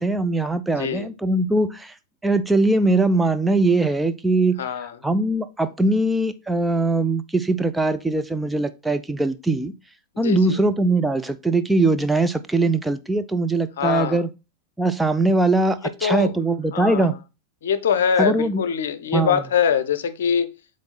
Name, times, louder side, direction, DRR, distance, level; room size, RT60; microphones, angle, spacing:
voice 1, 0.0-1.9 2.2-4.6 5.0-9.7 10.2-14.3 14.8-17.2 18.2-18.6 19.1-19.4, right 2 dB, 5° right, 0.5 m, -21 dB
voice 2, 4.6-4.9 10.2-10.6 13.8-14.2 16.0-16.3 16.7-17.1 17.6-20.5, left 7 dB, 60° left, 0.7 m, -23 dB
7.9 x 3.2 x 4.2 m
figure-of-eight pair, 90°, 0 cm